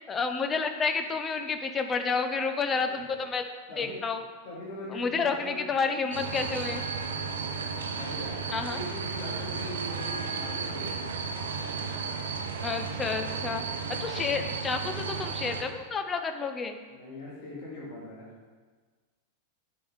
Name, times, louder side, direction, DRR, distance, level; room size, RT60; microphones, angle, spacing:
voice 1, 0.1-3.4 3.8-4.2 4.9-6.8 8.5-8.8 12.6-13.6 14.0-16.8, left 5 dB, 20° left, 7 dB, 0.7 m, -30 dB
voice 2, 2.7-3.2 3.7-4.0 4.4-5.7 7.4-8.4 8.7-11.0 16.9-18.2, left 1 dB, 45° left, -5 dB, 2.2 m, -41 dB
sound 1, 6.1-15.6, right 5 dB, 65° right, 0.8 m, -34 dB
8.8 x 5.1 x 5.0 m, 1.5 s
figure-of-eight pair, 90°, 0 cm